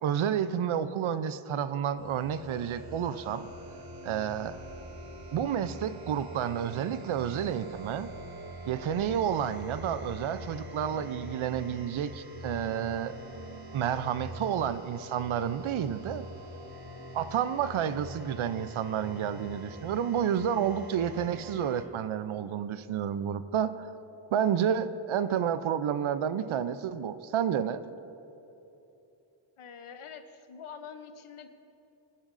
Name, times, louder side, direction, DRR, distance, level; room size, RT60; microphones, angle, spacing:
voice 1, 0.0-3.5 4.0-4.6 5.3-8.1 8.7-13.1 13.7-16.3 17.1-23.9 24.3-27.8, right 9 dB, 75° right, 13 dB, 0.6 m, -30 dB
sound 1, 2.0-21.8, equal, 45° right, 1.5 m, -44 dB
voice 2, 29.6-31.5, left 7 dB, 80° left, 9 dB, 0.8 m, -45 dB
16.5 x 9.8 x 2.6 m, 3.0 s
cardioid pair, 55°, 49 cm